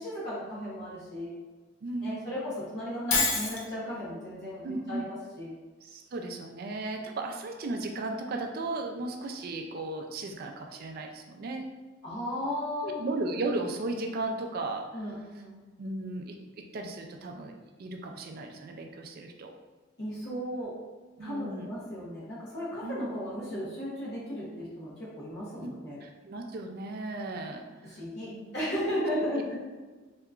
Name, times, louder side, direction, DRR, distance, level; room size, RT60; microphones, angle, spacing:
voice 1, 0.0-1.4 2.0-5.5 12.0-13.0 14.9-15.6 20.0-20.7 21.2-26.0 27.8-29.6, equal, 55° left, -9 dB, 0.9 m, -35 dB
voice 2, 1.8-2.3 4.6-5.0 5.8-11.7 12.8-15.1 15.8-17.5 17.8-19.5 21.2-21.7 22.8-23.1 25.6-25.7 26.0-28.0 28.3-28.5, right 2 dB, 45° right, 3 dB, 0.3 m, -35 dB
Shatter, 3.1-3.7, left 4 dB, 80° left, 0.5 m, -26 dB
3.4 x 2.8 x 2.4 m, 1.3 s
head